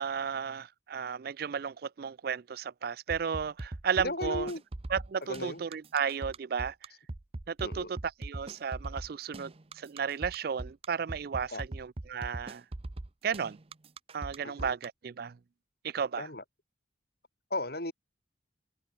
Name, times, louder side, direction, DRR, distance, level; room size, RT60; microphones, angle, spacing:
voice 1, 0.0-4.5 4.9-6.7 7.5-12.6 13.2-13.6 14.1-15.4 15.8-16.3, right 6 dB, 55° right, 0.4 m, -34 dB
sound 1, 3.1-14.9, right 2 dB, 30° right, 0.7 m, -40 dB
voice 2, 4.0-4.6 5.3-5.7 7.6-7.9 11.5-11.6 14.4-14.7 16.2-16.4 17.5-17.9, left 2 dB, 55° left, 6.3 m, -35 dB
head